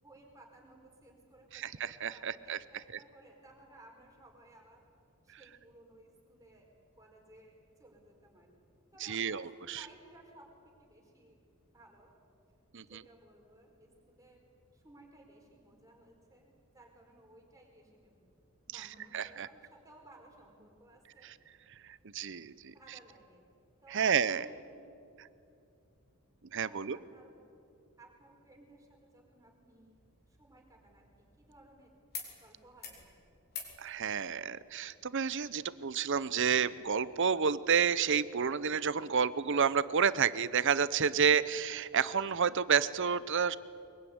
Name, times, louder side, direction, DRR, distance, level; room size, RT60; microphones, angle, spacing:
voice 1, 0.0-4.8 5.2-6.7 7.0-8.5 8.9-10.5 10.8-11.4 11.7-12.1 12.9-14.4 14.7-18.2 18.7-21.3 22.7-23.5 23.8-24.8 26.6-27.5 28.0-30.0 30.3-31.9 32.4-33.3, right 1 dB, 15° right, 0 dB, 4.7 m, -58 dB
voice 2, 1.5-2.6 9.0-9.8 12.7-13.0 18.7-18.9 19.1-19.5 21.2-21.3 22.1-22.7 23.9-24.4 26.5-27.0 33.8-43.6, right 6 dB, 55° right, 17 dB, 0.7 m, -30 dB
sound 1, 29.9-31.7 32.1-32.3 32.6-33.0 33.5-33.8 35.1-35.2, left 6 dB, 45° left, 4.3 m, -47 dB
23.5 x 22.0 x 9.5 m, 2.6 s
head